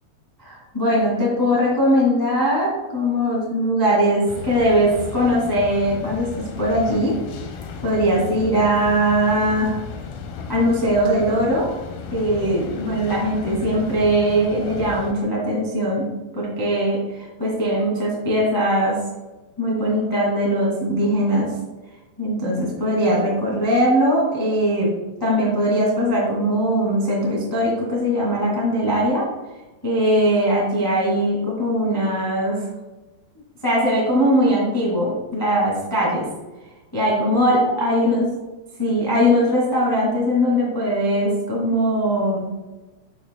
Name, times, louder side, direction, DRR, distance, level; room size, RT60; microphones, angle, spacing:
voice 1, 0.4-6.3 6.6-7.1 7.8-9.8 10.5-11.7 12.1-16.1 16.3-18.9 19.6-21.5 22.2-24.9 25.2-29.2 29.8-32.7 33.6-36.3 36.9-38.3 38.8-42.4, equal, 20° left, -4 dB, 0.6 m, -20 dB
sound 1, 4.3-15.1, left 6 dB, 80° left, 2.2 m, -34 dB
11.0 x 5.7 x 2.3 m, 1.1 s
omnidirectional pair, 4.9 m